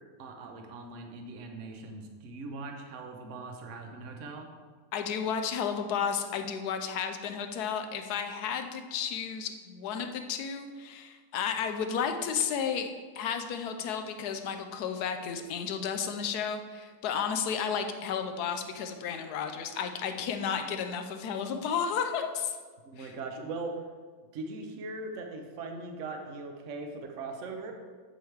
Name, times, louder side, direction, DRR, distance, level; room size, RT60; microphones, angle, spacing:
voice 1, 0.2-4.5 22.8-23.7 24.3-27.7, right 3 dB, 50° right, 3 dB, 1.1 m, -40 dB
voice 2, 4.9-22.6 23.0-23.1, left 7 dB, 70° left, 7 dB, 1.1 m, -32 dB
8.1 x 8.0 x 3.3 m, 1.5 s
omnidirectional pair, 2.0 m